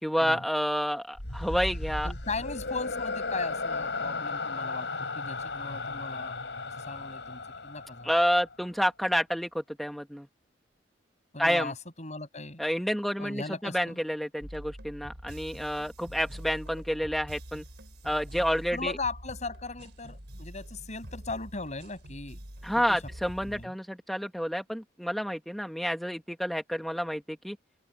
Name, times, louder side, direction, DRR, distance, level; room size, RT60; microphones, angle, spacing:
voice 1, 0.0-2.1 8.0-10.3 11.4-11.7 12.6-17.6 18.0-18.9 22.6-27.6, equal, ahead, 1.3 m, -29 dB
sound 1, 1.2-8.5, left 3 dB, 80° left, 5.1 m, -35 dB
voice 2, 2.0-4.9 5.1-6.4 6.7-8.1 11.3-12.6 13.2-14.0 18.3-18.4 18.7-22.4 22.7-23.0 23.4-23.7, left 3 dB, 40° left, 7.7 m, -38 dB
sound 2, 14.4-23.7, equal, 70° right, 6.5 m, -45 dB
open air
head